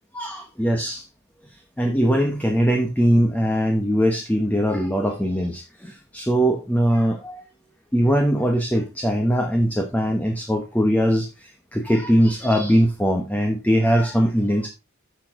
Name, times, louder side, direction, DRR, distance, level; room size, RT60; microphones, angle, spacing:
voice 1, 0.1-1.0 1.8-7.4 7.9-14.7, equal, 10° left, 3 dB, 1.1 m, -21 dB
9.7 x 6.3 x 3.7 m, 0.26 s
head